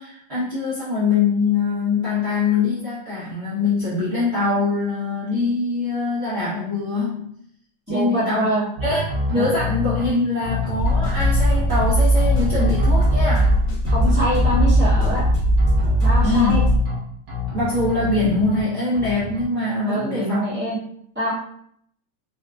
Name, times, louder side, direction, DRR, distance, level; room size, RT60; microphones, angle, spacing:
voice 1, 0.0-7.3 7.9-8.5 8.8-9.0 9.3-13.5 16.2-16.6 17.5-20.4, left 3 dB, 75° right, -10 dB, 0.5 m, -23 dB
voice 2, 7.9-8.6 9.3-9.4 13.8-15.2 16.0-16.6 19.9-20.8 21.1-21.3, equal, 5° right, -10 dB, 1.0 m, -24 dB
sound 1, 8.8-10.1 10.4-11.8 12.2-13.5 13.9-15.3 15.6-17.0 17.3-18.6 18.9-19.4, left 2 dB, 55° right, 1.3 m, -26 dB
sound 2, 10.8-16.8, right 1 dB, 85° left, 1.7 m, -19 dB
4.1 x 2.3 x 2.3 m, 0.68 s
omnidirectional pair, 2.4 m